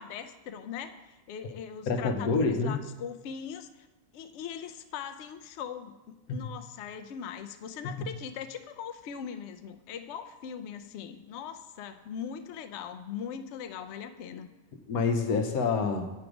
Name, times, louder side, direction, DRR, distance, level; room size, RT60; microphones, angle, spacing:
voice 1, 0.0-3.9 4.1-14.5, left 7 dB, 65° left, 9 dB, 0.7 m, -40 dB
voice 2, 1.9-2.8 6.3-6.5 7.8-8.1 14.9-16.1, left 4 dB, 85° left, 6 dB, 1.2 m, -28 dB
7.8 x 4.7 x 5.0 m, 1.1 s
omnidirectional pair, 1.5 m